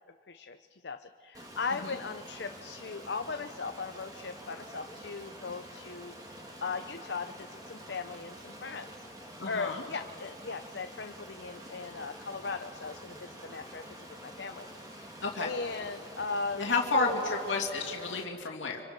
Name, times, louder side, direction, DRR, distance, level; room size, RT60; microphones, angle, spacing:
voice 1, 0.3-6.2 6.6-8.9 9.4-16.7 16.9-17.3, left 4 dB, 65° left, 7 dB, 0.7 m, -38 dB
Stream, 1.3-18.2, right 1 dB, 20° right, 2.7 m, -48 dB
voice 2, 9.4-9.8 15.2-15.5 16.6-18.8, left 3 dB, 80° left, 0 dB, 2.6 m, -30 dB
30.0 x 25.0 x 6.1 m, 2.5 s
head